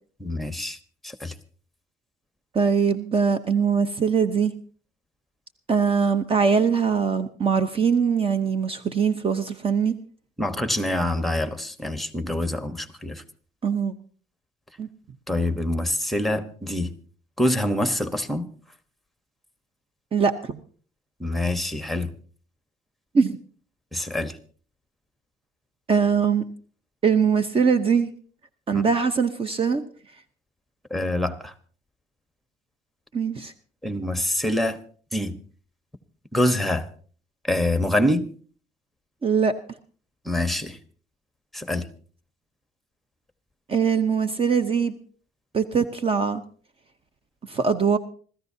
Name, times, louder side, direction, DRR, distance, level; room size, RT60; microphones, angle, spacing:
voice 1, 0.2-0.8 1.0-1.3 10.4-13.2 15.3-16.9 17.4-18.5 21.2-22.1 23.9-24.4 28.7-28.8 30.9-31.5 33.8-34.8 35.1-35.3 36.3-36.9 37.4-38.3 40.2-40.8 41.5-41.9, left 1 dB, ahead, 10 dB, 1.2 m, -25 dB
voice 2, 2.5-4.5 5.7-9.9 13.6-13.9 14.8-14.9 20.1-20.6 23.1-23.4 25.9-26.4 27.0-28.1 28.7-29.8 33.1-33.5 39.2-39.5 43.7-44.9 45.5-46.4 47.5-48.0, right 6 dB, 35° right, 10 dB, 0.8 m, -22 dB
26.0 x 14.0 x 2.8 m, 0.44 s
cardioid pair, 110°, 17 cm